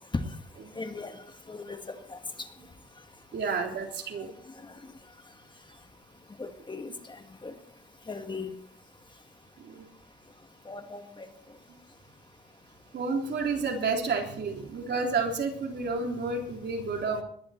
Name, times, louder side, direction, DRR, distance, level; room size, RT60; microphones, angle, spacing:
voice 1, 0.8-1.2 1.5-1.8 2.1-2.2 6.4-6.9 7.4-7.5 8.1-8.5 10.7-11.3, left 4 dB, 25° left, 7 dB, 1.7 m, -38 dB
voice 2, 3.3-4.3 9.6-9.9 12.9-17.2, right 4 dB, 60° right, 2 dB, 3.5 m, -30 dB
20.5 x 11.0 x 4.4 m, 0.64 s
cardioid pair, 90°, 20 cm